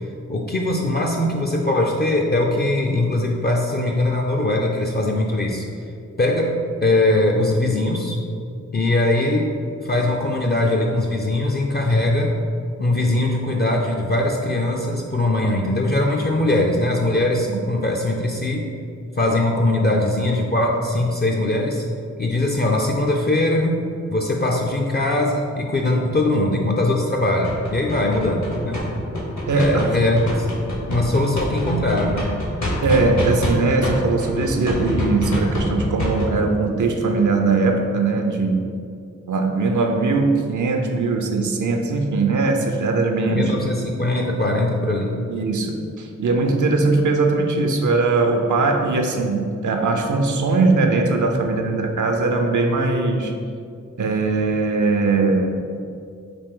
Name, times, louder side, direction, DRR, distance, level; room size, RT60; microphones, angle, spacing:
voice 1, 0.3-5.7 6.2-8.2 8.7-12.3 12.8-18.7 19.2-21.8 22.2-23.8 24.1-28.8 29.5-30.5 30.9-32.2 32.6-32.7 43.2-45.2, left 1 dB, 35° left, 0 dB, 0.4 m, -21 dB
sound 1, 27.4-33.5 33.8-36.3, left 1 dB, 65° left, 1.1 m, -25 dB
voice 2, 29.5-29.8 32.8-38.7 39.3-43.6 45.3-53.3 54.0-55.6, right 3 dB, 75° right, 3 dB, 0.5 m, -20 dB
5.1 x 2.5 x 3.7 m, 2.4 s
cardioid pair, 50°, 31 cm